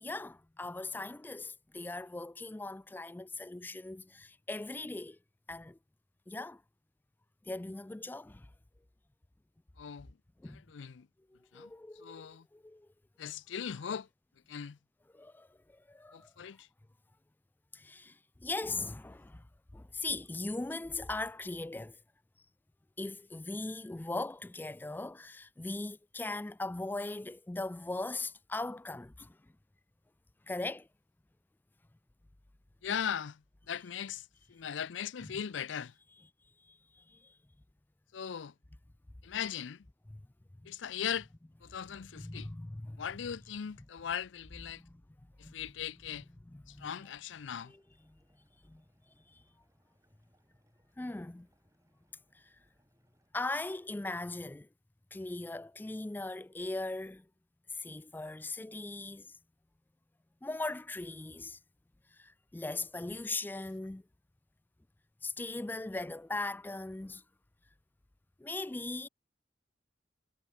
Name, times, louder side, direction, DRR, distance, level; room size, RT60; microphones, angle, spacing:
voice 1, 0.0-5.2 5.5-5.8 6.3-6.6 7.5-8.5 10.4-10.6 11.3-12.9 15.1-16.3 17.7-19.5 19.7-22.0 23.0-29.5 30.5-30.9 36.6-37.4 40.1-40.2 40.6-40.7 41.9-43.0 44.0-44.1 44.7-45.0 45.4-45.6 46.5-47.0 47.7-47.8 48.1-48.2 48.6-48.8 49.3-49.4 51.0-51.5 52.3-52.6 53.3-54.7 55.1-57.3 57.7-59.4 60.4-61.6 62.1-64.0 65.2-67.2 68.4-69.1, left 2 dB, 10° left, 0.3 m, -40 dB
voice 2, 9.8-10.1 10.5-11.1 11.5-11.7 12.0-12.5 13.2-14.1 14.5-14.8 16.1-16.7 32.8-33.4 33.7-35.9 38.1-38.5 39.2-39.8 40.7-41.3 41.6-42.5 43.0-44.8 45.4-46.2 46.7-47.7, left 8 dB, 85° left, 0.5 m, -39 dB
sound 1, 47.6-53.3, right 1 dB, 15° right, 4.0 m, -76 dB
head